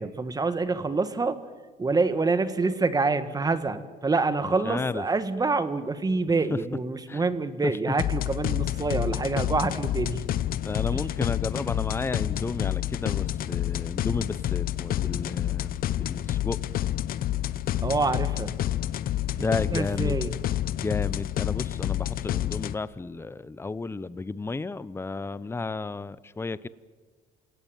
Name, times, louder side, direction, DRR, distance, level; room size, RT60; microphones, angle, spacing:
voice 1, 0.0-1.4 1.8-10.2 10.9-11.1 17.8-18.5 19.7-20.3, right 3 dB, 20° right, 11 dB, 1.7 m, -26 dB
voice 2, 4.4-5.0 7.1-7.2 7.6-7.7 10.6-16.6 19.3-20.2 20.8-26.7, left 3 dB, 15° left, 17 dB, 0.8 m, -32 dB
sound 1, 8.0-22.7, left 13 dB, 60° left, 0.8 m, -29 dB
28.5 x 18.0 x 9.3 m, 1.5 s
cardioid pair, 110°, 17 cm